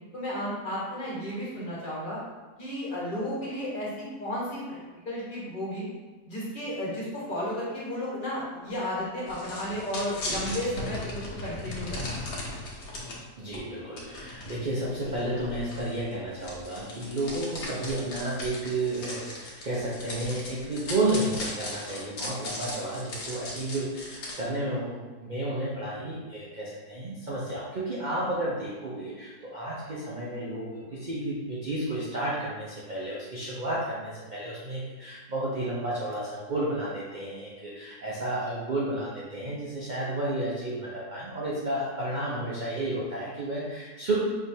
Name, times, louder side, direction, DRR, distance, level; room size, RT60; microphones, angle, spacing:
voice 1, 0.1-2.2 2.6-5.9 6.3-12.2, equal, 35° left, -7 dB, 1.2 m, -33 dB
sound 1, 9.3-13.2 13.5-13.6 14.0-24.4, left 2 dB, 85° left, 1.5 m, -38 dB
voice 2, 13.4-44.2, right 1 dB, 75° right, -7 dB, 0.4 m, -32 dB
5.6 x 3.0 x 2.7 m, 1.3 s
omnidirectional pair, 1.8 m